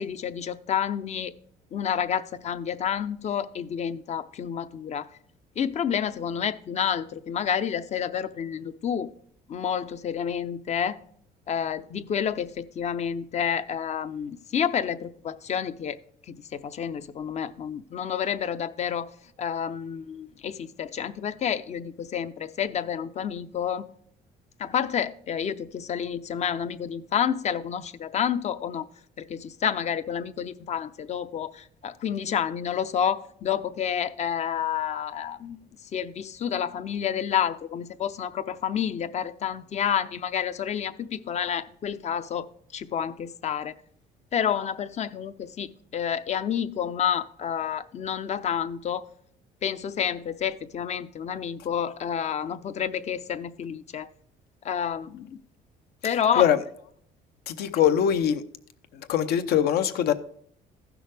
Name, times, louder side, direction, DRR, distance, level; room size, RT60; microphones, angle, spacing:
voice 1, 0.0-1.3 1.7-5.1 5.6-9.1 9.5-11.0 11.5-16.0 16.3-19.1 19.4-23.8 24.6-28.9 29.2-35.6 35.9-43.7 44.3-49.0 49.6-54.1 54.6-55.3 56.0-56.6, left 8 dB, 40° left, 0.6 m, -29 dB
voice 2, 57.5-58.4 59.1-60.1, left 9 dB, 70° left, 0.8 m, -22 dB
15.0 x 6.1 x 3.4 m
cardioid pair, 110°, 17 cm